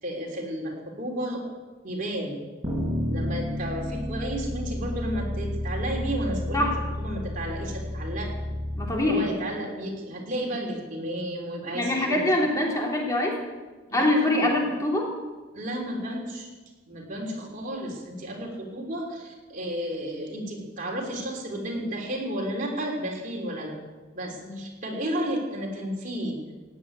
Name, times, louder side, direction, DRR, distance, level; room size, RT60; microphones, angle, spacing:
voice 1, 0.0-1.4 1.8-2.4 3.1-6.7 7.0-8.3 9.0-12.3 13.9-14.5 15.5-16.5 16.9-23.7 24.1-26.4, right 1 dB, 45° right, 0 dB, 3.5 m, -32 dB
sound 1, 2.6-8.9, left 1 dB, 25° right, 6.0 m, -31 dB
voice 2, 8.8-9.3 11.7-13.4 13.9-15.1 24.4-24.6, left 1 dB, 20° left, -1 dB, 3.1 m, -24 dB
16.5 x 8.4 x 9.6 m, 1.3 s
head